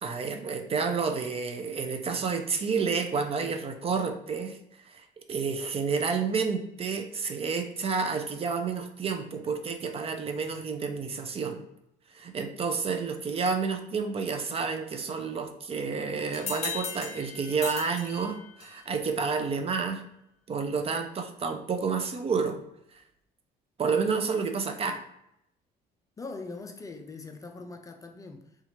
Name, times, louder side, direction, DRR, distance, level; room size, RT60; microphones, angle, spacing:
voice 1, 0.0-4.6 4.8-11.6 12.1-20.0 20.5-22.6 23.8-25.0, right 5 dB, 35° right, 7 dB, 0.5 m, -30 dB
sound 1, 16.3-18.9, left 5 dB, 40° left, 0.8 m, -38 dB
voice 2, 26.2-28.6, left 3 dB, 20° left, 4 dB, 0.4 m, -42 dB
2.8 x 2.4 x 4.2 m, 0.79 s
cardioid pair, 110°, 17 cm